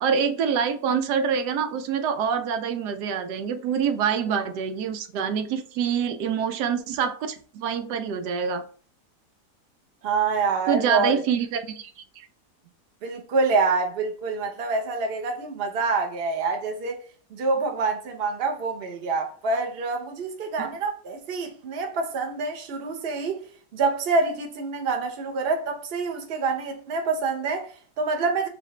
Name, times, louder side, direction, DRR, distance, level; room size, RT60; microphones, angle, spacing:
voice 1, 0.0-8.6 10.7-12.0 20.6-20.7, right 7 dB, 90° right, 1.2 m, -26 dB
voice 2, 10.0-11.2 13.0-17.0 17.3-23.4 23.7-28.5, right 4 dB, 45° right, 0.9 m, -26 dB
4.7 x 2.5 x 3.2 m
omnidirectional pair, 1.7 m